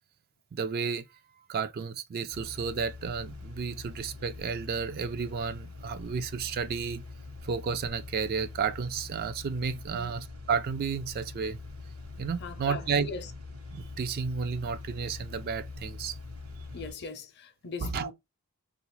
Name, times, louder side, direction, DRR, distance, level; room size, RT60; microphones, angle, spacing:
voice 1, 0.5-1.0 1.5-7.0 7.4-11.6 12.2-13.1 13.7-16.2 17.8-18.1, right 5 dB, 45° right, 0.3 m, -32 dB
sound 1, 2.3-16.9, left 3 dB, 70° right, 1.0 m, -44 dB
voice 2, 12.4-13.3 16.7-18.1, left 4 dB, 50° left, 0.6 m, -40 dB
3.3 x 2.4 x 3.0 m
head